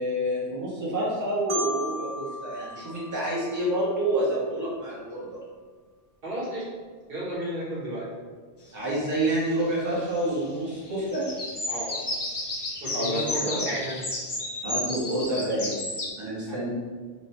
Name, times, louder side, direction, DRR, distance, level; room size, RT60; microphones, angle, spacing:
voice 1, 0.0-5.4 8.7-11.3 12.9-13.2 13.5-13.6 14.6-15.7 16.2-16.7, right 1 dB, 20° right, -8 dB, 0.9 m, -28 dB
Marimba xylophone, 1.5-4.3, equal, 85° right, 0.9 m, -36 dB
voice 2, 6.2-6.6 7.1-8.1 11.7-11.9 12.8-14.0 16.5-16.7, right 1 dB, 65° right, -7 dB, 1.2 m, -32 dB
sound 1, 9.5-10.4 10.7-16.1, left 2 dB, 45° left, 0.3 m, -32 dB
3.0 x 2.2 x 4.1 m, 1.5 s
omnidirectional pair, 1.1 m